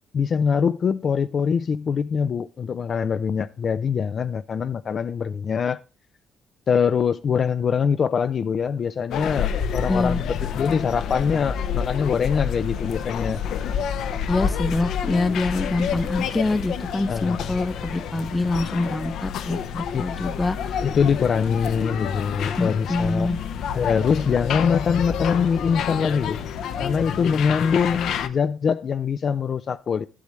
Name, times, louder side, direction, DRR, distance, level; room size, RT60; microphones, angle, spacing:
voice 1, 0.1-5.8 6.7-13.4 17.1-17.6 19.9-20.0 20.8-23.3 23.7-26.4 26.8-30.1, left 6 dB, 50° left, 0.4 m, -23 dB
sound 1, 9.1-28.3, left 7 dB, 80° left, 0.7 m, -29 dB
voice 2, 9.9-10.2 14.3-20.8 22.6-23.4, left 2 dB, 15° left, 0.8 m, -25 dB
10.5 x 8.3 x 3.1 m
cardioid pair, 90°, 0 cm